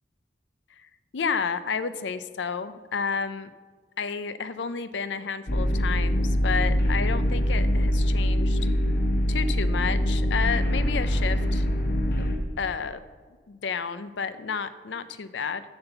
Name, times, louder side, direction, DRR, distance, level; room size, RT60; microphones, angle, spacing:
voice 1, 0.8-3.5 4.0-8.6 9.3-11.7 12.2-12.3 12.6-13.0 13.5-15.6, left 6 dB, 80° left, 13 dB, 0.5 m, -31 dB
sound 1, 5.5-12.4, equal, 50° left, 1.0 m, -24 dB
7.9 x 7.2 x 6.8 m, 1.5 s
head